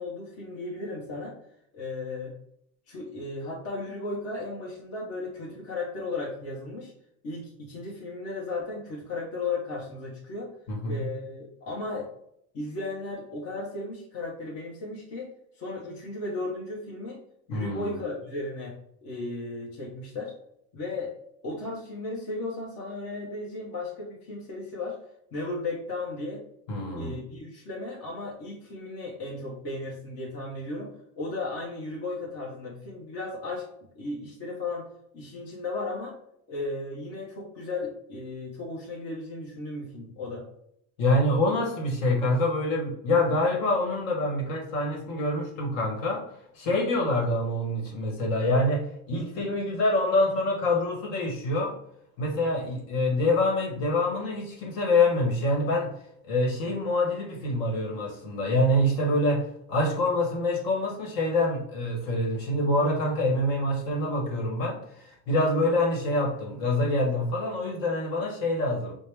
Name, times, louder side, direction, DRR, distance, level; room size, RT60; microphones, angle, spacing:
voice 1, 0.0-1.4 1.7-2.3 2.9-6.9 7.2-10.5 10.8-12.1 12.5-15.3 15.6-17.2 17.5-20.3 20.7-21.1 21.4-25.0 25.3-26.4 26.7-33.7 34.0-34.9 35.1-36.2 36.5-40.5, left 2 dB, 40° left, -4 dB, 0.8 m, -35 dB
voice 2, 10.7-11.0 17.5-18.0 26.7-27.2 41.0-46.3 46.5-51.8 52.2-55.9 56.2-68.9, left 1 dB, 55° left, 1 dB, 1.2 m, -26 dB
4.6 x 2.1 x 3.3 m, 0.74 s
cardioid pair, 155°, 40 cm